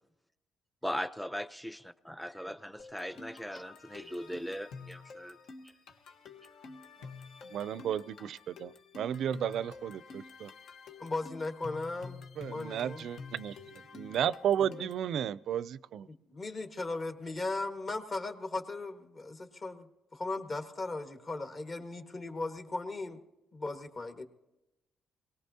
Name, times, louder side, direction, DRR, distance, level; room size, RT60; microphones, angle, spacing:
voice 1, 0.8-1.8 2.1-5.4, equal, ahead, 13 dB, 0.6 m, -39 dB
sound 1, 2.8-15.1, left 4 dB, 75° left, 1.2 m, -49 dB
voice 2, 7.5-10.5 12.4-13.5 13.9-16.1, right 9 dB, 70° right, 18 dB, 0.4 m, -33 dB
voice 3, 11.0-13.1 14.6-14.9 16.1-19.9 20.1-23.2 23.5-24.2, left 2 dB, 40° left, 5 dB, 1.6 m, -37 dB
22.5 x 18.0 x 2.8 m, 0.96 s
cardioid pair, 90°, 0 cm